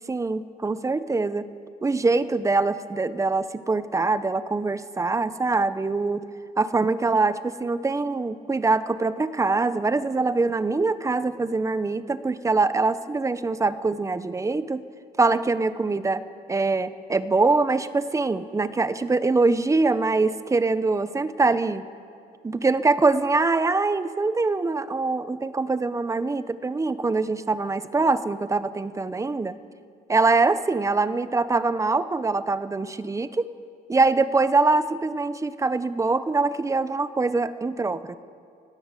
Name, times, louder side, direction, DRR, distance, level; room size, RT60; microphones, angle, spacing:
voice 1, 0.1-1.5 1.8-6.2 6.6-14.8 15.2-21.8 22.4-29.6 30.1-33.5 33.9-38.2, right 3 dB, 20° right, 13 dB, 1.0 m, -23 dB
29.5 x 17.5 x 7.5 m, 2.5 s
cardioid pair, 110°, 17 cm